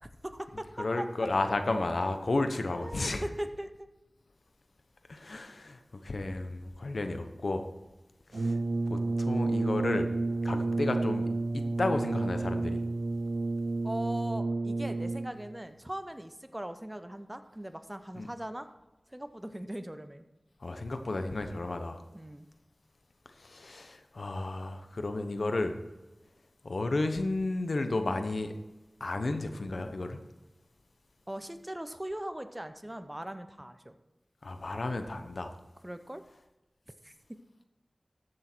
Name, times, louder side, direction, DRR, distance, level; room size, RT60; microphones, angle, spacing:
voice 1, 0.0-1.0 2.8-3.9 13.8-18.7 19.1-20.2 22.1-22.5 31.3-34.0 35.8-36.2 37.0-37.4, right 1 dB, 20° right, 9 dB, 0.8 m, -40 dB
voice 2, 0.8-3.2 5.1-7.7 8.3-8.6 8.9-10.1 10.4-12.8 18.1-18.3 20.6-22.0 23.4-25.8 26.6-28.5 29.0-30.2 34.4-35.5, left 2 dB, 80° left, 7 dB, 0.9 m, -32 dB
Brass instrument, 8.3-15.5, right 2 dB, 90° right, 0.6 m, -30 dB
14.0 x 6.4 x 4.5 m, 1.1 s
wide cardioid pair, 40°, 0 cm